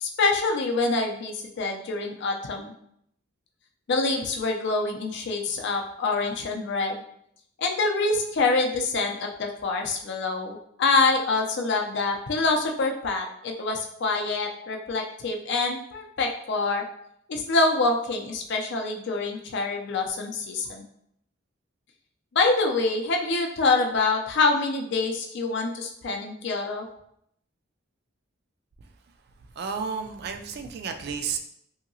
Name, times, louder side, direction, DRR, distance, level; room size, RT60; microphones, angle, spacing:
voice 1, 0.0-2.7 3.9-7.0 7.6-16.8 17.3-20.8 22.3-26.9, left 3 dB, 60° left, 2 dB, 0.5 m, -26 dB
voice 2, 29.6-31.4, right 6 dB, 55° right, 6 dB, 0.3 m, -32 dB
2.8 x 2.7 x 2.6 m, 0.71 s
head